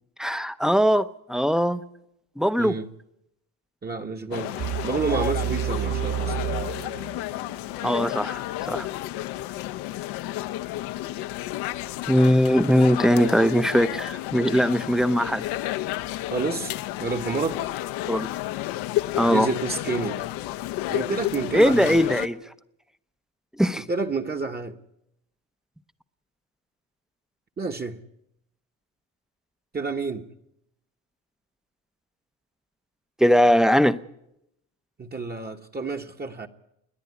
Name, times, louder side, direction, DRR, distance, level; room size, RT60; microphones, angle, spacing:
voice 1, 0.2-1.8 2.4-2.8 7.8-8.9 12.1-15.4 18.1-18.3 19.2-19.5 21.5-22.4 23.6-23.8 33.2-34.0, equal, ahead, 0.7 m, -20 dB
voice 2, 3.8-4.6 4.8-6.4 16.3-16.7 17.0-17.6 19.2-20.2 20.9-22.1 23.7-24.7 27.6-28.0 29.7-30.2 35.0-36.5, right 4 dB, 25° right, 1.2 m, -29 dB
sound 1, 4.3-22.3, left 15 dB, 80° left, 1.0 m, -31 dB
sound 2, 4.6-7.6, right 11 dB, 60° right, 2.7 m, -30 dB
28.0 x 10.5 x 9.7 m
cardioid pair, 105°, 40 cm